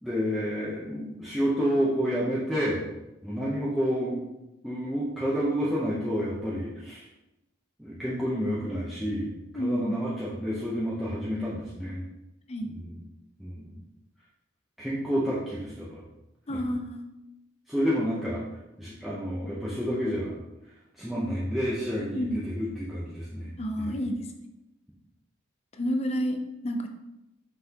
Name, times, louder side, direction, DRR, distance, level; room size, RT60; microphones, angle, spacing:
voice 1, 0.0-2.8 3.2-4.2 4.6-7.0 7.8-12.0 12.7-12.9 13.4-13.7 14.8-16.0 16.5-16.6 17.7-18.4 18.8-20.3 21.0-23.5 23.8-24.0, equal, ahead, -9 dB, 0.8 m, -29 dB
voice 2, 9.5-10.0 12.5-12.7 16.5-17.0 22.1-22.4 23.6-24.3 25.7-26.9, equal, 30° left, 4 dB, 0.6 m, -30 dB
5.9 x 5.8 x 2.9 m, 0.94 s
head